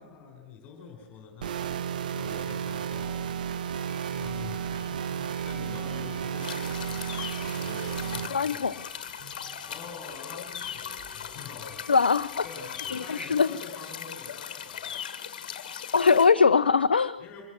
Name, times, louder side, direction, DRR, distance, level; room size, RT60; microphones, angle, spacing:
voice 1, 0.0-1.8 2.1-3.3 4.1-4.8 5.4-8.8 9.6-11.8 12.4-15.1 17.2-17.4, left 5 dB, 25° left, 2 dB, 4.3 m, -45 dB
sound 1, 1.4-8.3, right 8 dB, 55° right, 0.8 m, -33 dB
sound 2, 3.8-13.3, equal, 25° right, 5.8 m, -50 dB
sound 3, 6.4-16.3, left 9 dB, 50° left, 1.7 m, -39 dB
voice 2, 8.3-8.7 11.9-12.4 12.9-13.5 15.9-17.2, left 5 dB, 70° left, 10 dB, 0.6 m, -21 dB
24.5 x 14.0 x 7.7 m, 0.94 s
figure-of-eight pair, 110°, 5 cm